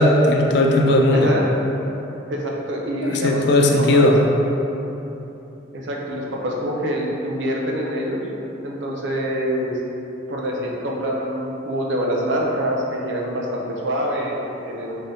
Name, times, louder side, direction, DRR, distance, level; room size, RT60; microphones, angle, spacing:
voice 1, 0.0-1.3 3.0-4.2, left 1 dB, 60° left, 1 dB, 0.4 m, -16 dB
voice 2, 1.1-1.5 2.3-4.1 5.7-8.3 8.6-9.8 10.3-14.4 14.7-15.0, equal, 70° right, -2 dB, 0.5 m, -25 dB
3.8 x 3.2 x 2.7 m, 3.0 s
head